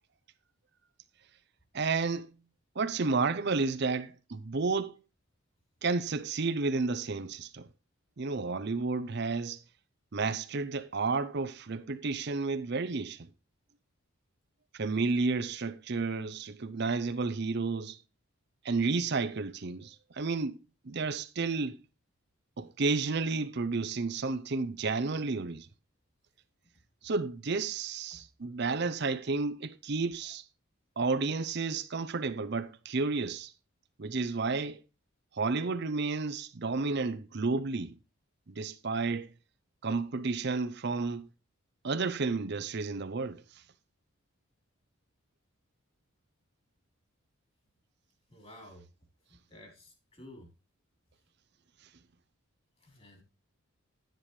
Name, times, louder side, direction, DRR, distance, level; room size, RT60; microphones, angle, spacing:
voice 1, 1.7-2.3 2.8-5.0 5.8-7.7 8.2-9.6 10.1-13.3 14.7-18.0 18.6-20.6 20.8-21.8 22.6-25.7 27.0-30.5 31.0-33.5 34.0-34.8 35.3-38.0 38.5-39.3 39.8-41.3 41.8-43.4, right 4 dB, 50° right, 0.6 m, -31 dB
voice 2, 48.3-48.8 49.5-50.5 52.8-53.2, left 1 dB, 25° left, 3.6 m, -52 dB
10.5 x 10.0 x 3.2 m
head